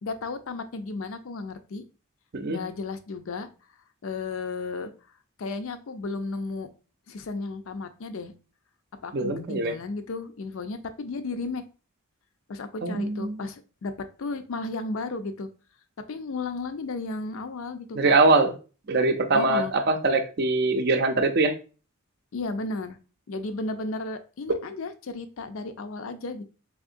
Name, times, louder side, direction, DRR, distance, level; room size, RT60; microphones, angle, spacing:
voice 1, 0.0-1.8 2.5-3.5 4.0-4.9 5.4-6.7 7.1-8.3 9.0-11.6 12.5-13.9 14.2-15.5 16.1-18.2 19.3-19.7 22.3-23.0 23.3-26.4, left 3 dB, 70° left, 10 dB, 0.4 m, -34 dB
voice 2, 9.1-9.7 12.8-13.4 18.0-18.5 18.9-21.5 24.5-24.6, right 3 dB, 50° right, 6 dB, 0.5 m, -22 dB
3.6 x 3.6 x 2.5 m, 0.35 s
head